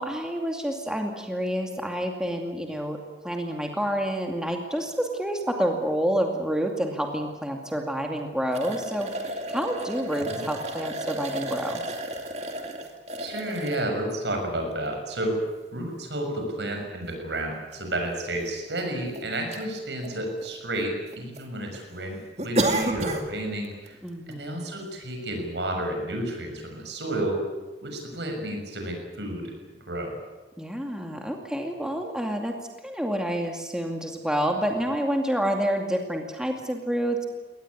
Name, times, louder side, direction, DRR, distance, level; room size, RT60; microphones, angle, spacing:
voice 1, 0.0-3.0 3.2-11.8 24.0-24.6 30.6-32.5 32.8-37.2, equal, 5° right, 2 dB, 2.4 m, -28 dB
sound 1, 8.5-13.9 14.6-14.7 16.3-16.4 16.7-16.8 17.7-17.8 18.1-18.2 18.8-19.2 19.5-19.7 20.0-20.8 21.1-21.4 21.7-21.8 22.4-23.3 23.6-23.9 24.3-24.4, right 1 dB, 35° right, 2.4 m, -31 dB
voice 2, 13.2-15.4 15.7-24.0 24.3-27.4 27.8-29.4 29.9-30.2, right 1 dB, 75° right, 3 dB, 6.5 m, -31 dB
23.0 x 18.5 x 9.7 m, 1.2 s
head